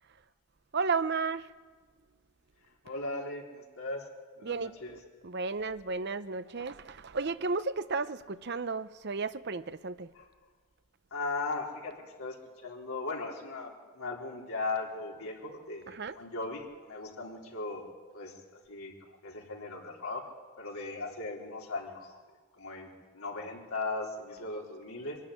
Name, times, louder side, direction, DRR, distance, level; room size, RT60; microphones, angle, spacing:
voice 1, 0.7-1.5 4.4-4.8 5.2-10.1 15.9-16.2, right 4 dB, 50° right, 0.7 m, -33 dB
voice 2, 2.8-4.1 4.4-5.0 10.2-10.3 11.1-11.9 12.2-17.8 18.1-18.3 18.7-20.2 20.6-22.2 22.6-25.2, left 3 dB, 80° left, 3.9 m, -38 dB
24.5 x 12.5 x 10.0 m
head